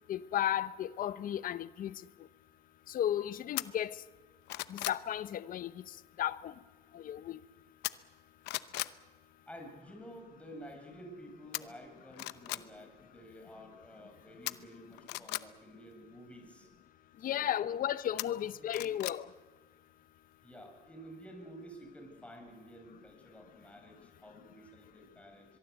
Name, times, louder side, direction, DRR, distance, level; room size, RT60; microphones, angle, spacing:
voice 1, 0.1-1.9 2.9-4.0 4.7-5.7 6.2-6.5 6.9-7.4 17.2-19.2, left 11 dB, 55° left, 0.8 m, -34 dB
sound 1, 3.6-3.7 4.2-5.0 7.8-8.2 8.4-8.9 11.5-11.6 12.1-12.6 14.5-15.4 18.2-19.2 19.6-19.7, left 18 dB, 90° left, 0.8 m, -37 dB
voice 2, 9.5-16.7 17.2-17.7 18.2-18.9 20.4-25.5, equal, 5° left, 7.4 m, -51 dB
23.5 x 23.0 x 8.2 m
cardioid pair, 110°, 17 cm